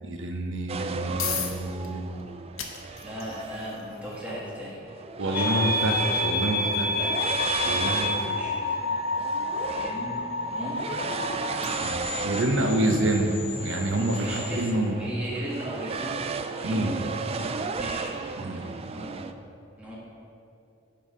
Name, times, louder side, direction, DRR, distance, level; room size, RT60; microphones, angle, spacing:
voice 1, 0.0-2.2 5.2-6.9 7.6-8.4 11.8-13.3 13.6-15.0 16.6-17.0 18.4-18.7, right 1 dB, 65° right, 4 dB, 0.8 m, -27 dB
sound 1, 0.7-15.6, left 8 dB, 65° left, 0.9 m, -43 dB
sound 2, 0.7-19.3, right 4 dB, 30° right, 0.3 m, -35 dB
voice 2, 3.0-4.8 5.2-5.7 6.9-7.2 8.1-8.6 9.7-10.9 12.7-13.1 14.2-16.3 16.6-18.1 18.5-19.2 19.8-20.0, equal, 5° right, -7 dB, 1.5 m, -37 dB
sound 3, 5.3-14.7, left 2 dB, 45° left, 0.5 m, -30 dB
8.9 x 5.4 x 5.0 m, 2.6 s
head